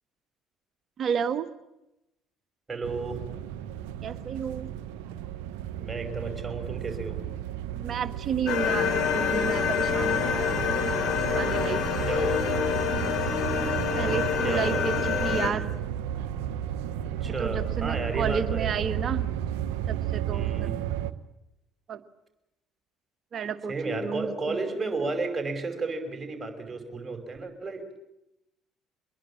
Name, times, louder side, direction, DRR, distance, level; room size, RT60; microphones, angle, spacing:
voice 1, 1.0-1.5 4.0-4.7 7.8-11.1 11.3-12.1 14.0-15.7 17.2-19.3 19.9-20.7 21.9-22.0 23.3-23.7 24.0-24.6, right 7 dB, 45° right, 11 dB, 1.6 m, -32 dB
voice 2, 2.7-3.2 5.8-7.2 12.1-12.5 14.4-14.8 17.2-18.7 20.3-20.8 23.7-27.8, right 3 dB, 20° right, 5 dB, 5.6 m, -32 dB
sound 1, 2.8-21.1, right 10 dB, 70° right, 1.0 m, -33 dB
sound 2, 8.5-15.5, left 7 dB, 60° left, 3.9 m, -27 dB
24.0 x 21.5 x 8.8 m, 0.89 s
figure-of-eight pair, 55°, 0 cm